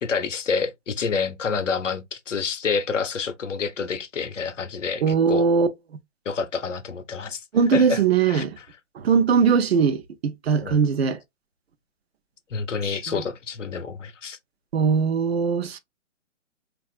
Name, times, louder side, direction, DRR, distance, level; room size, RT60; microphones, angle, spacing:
voice 1, 0.0-5.5 6.3-7.4 7.7-8.0 8.3-8.7 10.6-10.8 12.5-14.4, left 5 dB, 80° left, 0.7 m, -28 dB
voice 2, 5.0-5.7 7.5-8.6 9.0-11.2 14.7-15.8, right 6 dB, 55° right, 0.5 m, -20 dB
3.5 x 2.4 x 2.3 m
figure-of-eight pair, 130°, 37 cm